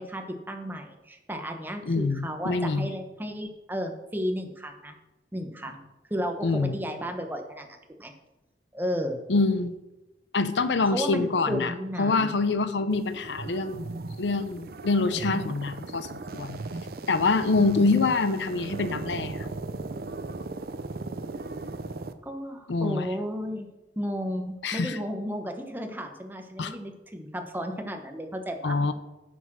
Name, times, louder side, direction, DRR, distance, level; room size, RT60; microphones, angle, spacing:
voice 1, 0.1-5.0 5.3-5.8 6.1-7.7 8.0-8.1 8.7-9.2 10.8-12.3 22.2-23.7 24.0-28.8, equal, 10° right, 4 dB, 1.0 m, -33 dB
voice 2, 1.9-2.9 6.4-6.8 9.3-9.8 10.3-11.7 12.0-13.9 14.2-16.6 17.1-19.5 22.7-23.1 24.6-25.0 26.6-26.8 28.6-28.9, left 3 dB, 85° left, 12 dB, 0.7 m, -25 dB
sound 1, 12.9-22.1, right 3 dB, 55° right, 0.6 m, -37 dB
9.4 x 6.2 x 6.0 m, 1.0 s
head